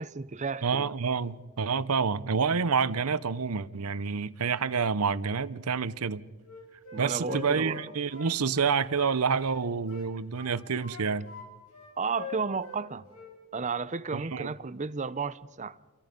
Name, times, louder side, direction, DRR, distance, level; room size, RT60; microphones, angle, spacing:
voice 1, 0.0-0.9 6.9-7.8 12.0-13.1 13.5-15.8, right 4 dB, 35° right, 0.7 m, -33 dB
voice 2, 0.6-6.2 7.0-11.3 14.1-14.5, right 5 dB, 90° right, 0.8 m, -28 dB
Wind instrument woodwind instrument, 6.4-9.6 9.9-11.5 11.7-12.8 13.1-13.4, left 5 dB, 90° left, 6.6 m, -44 dB
29.5 x 23.5 x 5.3 m
head